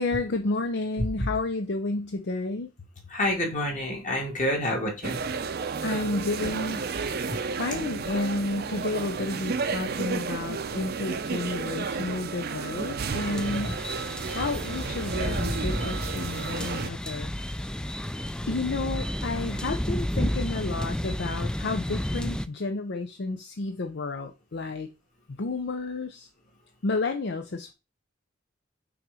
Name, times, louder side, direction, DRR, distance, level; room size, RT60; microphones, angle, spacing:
voice 1, 0.0-2.7 5.8-6.9 7.6-13.8 14.3-17.3 18.5-24.9 25.3-26.3 26.8-27.7, left 3 dB, 60° left, 0.6 m, -31 dB
voice 2, 3.1-5.2, left 1 dB, 40° left, 2.4 m, -28 dB
sound 1, 5.0-16.9, right 4 dB, 55° right, 0.6 m, -32 dB
sound 2, 13.1-22.5, left 1 dB, 5° left, 0.3 m, -31 dB
5.8 x 3.9 x 4.9 m
head